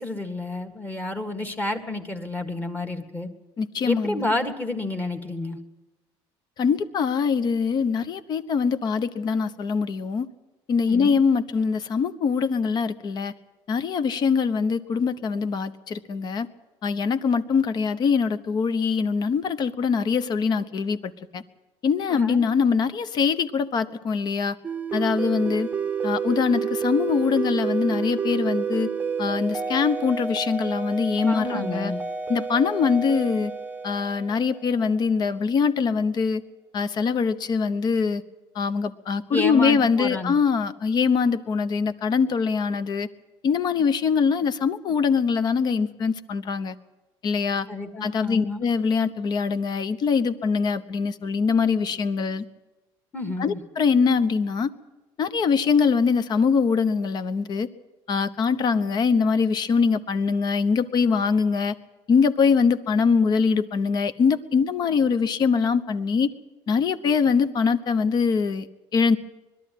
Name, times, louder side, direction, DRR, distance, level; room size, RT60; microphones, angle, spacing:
voice 1, 0.0-3.3 3.8-5.6 10.9-11.2 22.1-22.4 31.3-32.0 39.3-40.4 47.7-48.6 53.1-53.6, left 2 dB, 15° left, 4 dB, 1.8 m, -30 dB
voice 2, 3.6-4.3 6.6-10.3 10.7-13.3 13.7-16.5 16.8-21.4 21.8-24.6 24.9-25.7 26.0-28.9 29.2-31.9 32.3-33.5 33.8-36.4 36.7-38.2 38.5-43.1 43.4-46.7 47.2-47.7 48.0-52.4 53.4-54.7 55.2-57.7 58.1-61.7 62.1-66.3 66.7-68.7 68.9-69.2, left 5 dB, 45° left, 12 dB, 1.1 m, -23 dB
sound 1, 24.6-35.0, right 6 dB, 15° right, 0.8 m, -30 dB
21.5 x 13.0 x 9.3 m, 1.1 s
cardioid pair, 130°, 10 cm